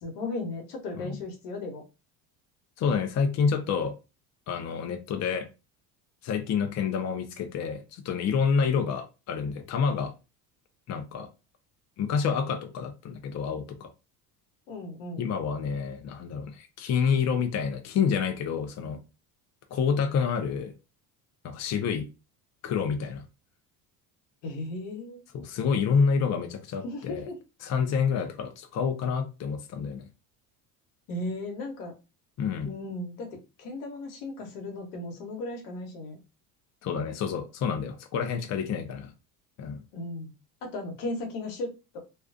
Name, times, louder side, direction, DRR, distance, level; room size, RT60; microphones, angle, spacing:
voice 1, 0.0-1.8 14.7-15.3 24.4-25.2 26.8-27.4 31.1-31.9 32.6-36.2 39.9-40.3 40.6-42.0, left 2 dB, 85° left, 1.1 m, -36 dB
voice 2, 2.8-3.9 4.5-5.5 6.2-10.1 10.9-11.3 12.0-13.9 15.2-19.0 19.7-20.7 21.4-22.0 22.6-23.2 25.3-27.3 27.6-30.0 32.4-32.7 36.8-39.1 39.6-39.8, left 6 dB, 35° left, 0.5 m, -28 dB
2.4 x 2.2 x 2.5 m
supercardioid pair, 85°, 46 cm